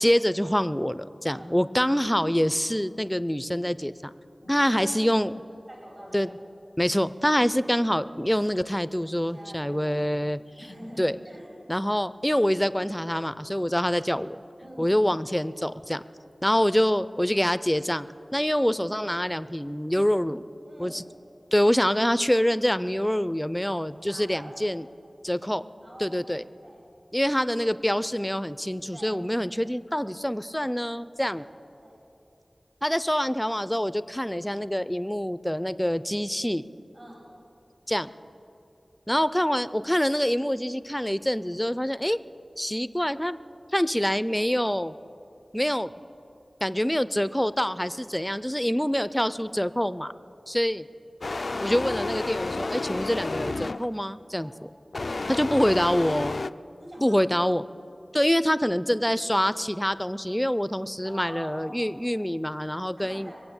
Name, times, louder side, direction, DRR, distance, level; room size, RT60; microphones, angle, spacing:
voice 1, 0.0-4.1 4.5-5.3 6.1-6.3 6.8-10.4 11.0-11.2 11.7-14.4 14.8-16.0 16.4-18.1 18.3-20.4 20.8-21.0 21.5-24.9 25.2-25.6 26.0-26.4 27.1-31.4 32.8-36.6 37.9-38.1 39.1-42.2 42.6-43.4 43.7-44.9 45.5-45.9 46.6-50.1 50.5-50.9 51.6-54.7 55.3-56.4 57.0-57.6 58.1-63.3, equal, 10° left, 14 dB, 0.4 m, -25 dB
voice 2, 4.4-5.1 5.5-6.3 7.4-7.6 9.3-11.5 14.6-14.8 20.6-21.0 24.1-24.6 25.8-26.3 26.6-26.8 28.9-29.3 31.2-31.4 31.8-32.0 36.9-37.4 52.7-53.4 54.4-54.7 54.9-55.3 56.8-57.2 61.0-61.9 63.0-63.4, equal, 55° right, -5 dB, 4.7 m, -45 dB
sound 1, 51.2-54.0 54.9-56.5, left 3 dB, 70° left, 0.3 m, -31 dB
23.0 x 8.4 x 7.1 m, 2.6 s
wide cardioid pair, 65°, 0 cm